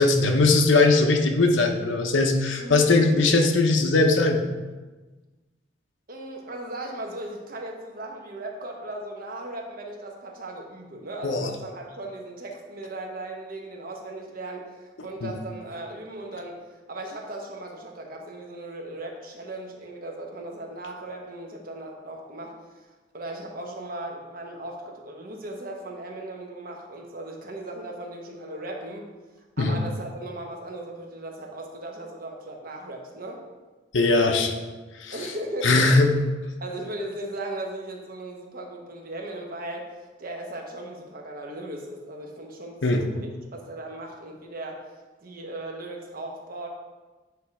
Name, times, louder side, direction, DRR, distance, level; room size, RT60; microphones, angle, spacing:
voice 1, 0.0-4.5 11.2-11.5 15.2-15.3 29.6-29.8 33.9-34.5 35.0-35.1 35.6-36.1 42.8-43.0, left 3 dB, 80° left, 4 dB, 0.8 m, -20 dB
voice 2, 2.6-2.9 6.1-22.9 23.1-29.1 29.6-33.4 34.2-34.4 35.1-35.9 36.6-44.9 45.2-46.7, right 1 dB, 50° right, 1 dB, 1.1 m, -37 dB
9.1 x 3.3 x 4.8 m, 1.2 s
head